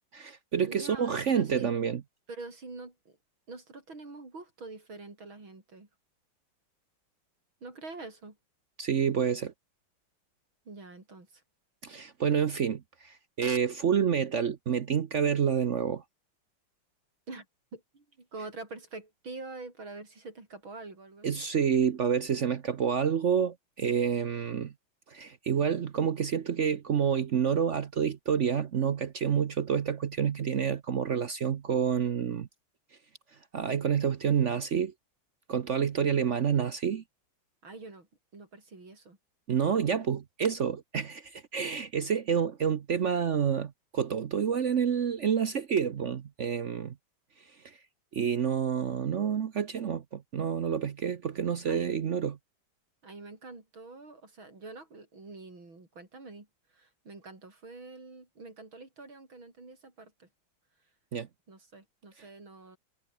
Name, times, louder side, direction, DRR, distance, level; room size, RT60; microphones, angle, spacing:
voice 1, 0.0-2.0 8.8-9.5 11.8-16.0 21.2-24.7 25.1-32.5 33.5-34.9 35.5-37.0 39.5-47.0 47.6-47.8 48.1-52.4 61.1-61.3, right 7 dB, 55° right, 0.8 m, -28 dB
voice 2, 0.7-1.7 2.3-3.2 3.5-5.9 7.6-8.4 10.6-11.4 17.3-17.5 17.7-21.4 37.6-39.2 39.7-40.0 51.7-52.0 53.0-60.3 61.5-62.8, right 3 dB, 70° right, 6.5 m, -46 dB
omnidirectional pair, 2.2 m